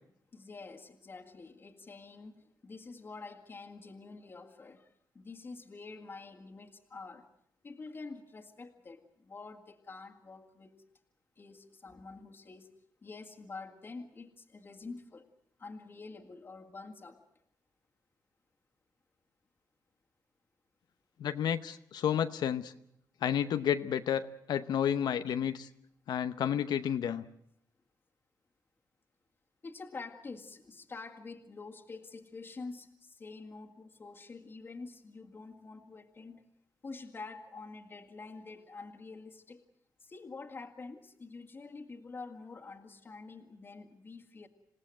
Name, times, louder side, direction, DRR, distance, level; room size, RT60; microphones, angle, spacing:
voice 1, 0.3-4.9 5.1-7.3 7.6-10.8 11.4-12.7 13.0-15.3 15.6-17.2 29.6-36.4 36.8-39.6 40.0-44.5, left 3 dB, 30° left, 2 dB, 1.9 m, -47 dB
voice 2, 21.2-22.7 23.2-25.7 26.1-27.2, left 9 dB, 80° left, 10 dB, 0.9 m, -31 dB
27.5 x 17.5 x 7.8 m, 0.74 s
wide cardioid pair, 150°, 7 cm